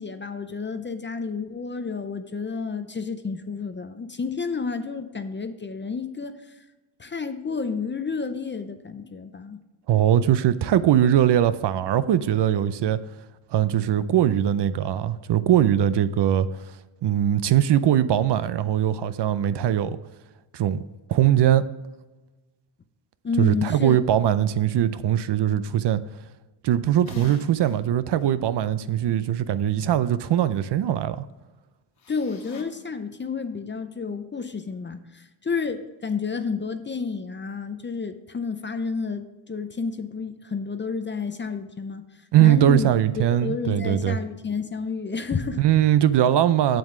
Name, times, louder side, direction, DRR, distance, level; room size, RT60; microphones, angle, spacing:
voice 1, 0.0-6.4 7.0-9.6 23.2-24.0 32.1-42.0 42.4-42.9 43.4-45.6, left 5 dB, 25° left, 0.5 m, -30 dB
voice 2, 9.9-13.0 13.5-16.5 17.0-20.0 20.5-20.8 21.1-21.6 23.4-26.0 26.6-31.2 42.3-44.2 45.6-46.8, right 11 dB, 55° right, 0.5 m, -21 dB
sound 1, 27.0-27.8 28.2-28.3 32.0-32.6, left 4 dB, 65° left, 1.8 m, -41 dB
7.6 x 7.5 x 3.7 m
cardioid pair, 120°, 50 cm